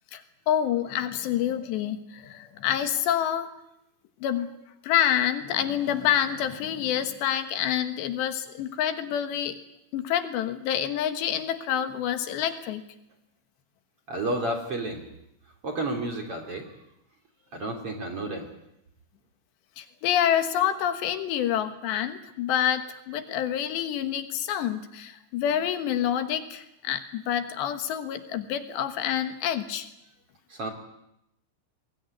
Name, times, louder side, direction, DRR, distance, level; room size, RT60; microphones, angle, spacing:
voice 1, 0.1-3.5 4.2-4.5 4.8-9.6 9.9-12.8 19.8-29.9, left 10 dB, 75° left, 8 dB, 3.4 m, -27 dB
voice 2, 14.1-15.0 15.6-16.8 17.5-18.5 30.5-30.7, right 2 dB, 35° right, 3 dB, 3.2 m, -31 dB
23.5 x 21.0 x 9.6 m, 0.84 s
omnidirectional pair, 5.3 m